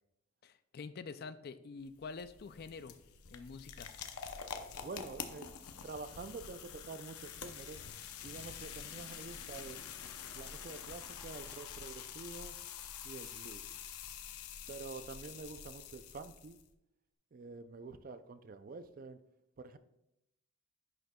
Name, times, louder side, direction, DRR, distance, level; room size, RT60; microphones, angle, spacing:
voice 1, 0.4-3.0 3.2-3.9, left 4 dB, 45° left, 13 dB, 0.3 m, -47 dB
sound 1, 1.8-16.7, left 7 dB, 85° left, 0.6 m, -47 dB
voice 2, 4.8-7.8 8.2-9.8 10.3-12.6 13.0-13.7 14.7-16.6 17.3-19.2 19.6-19.8, right 4 dB, 40° right, 11 dB, 0.4 m, -47 dB
10.5 x 6.4 x 2.2 m, 0.84 s
head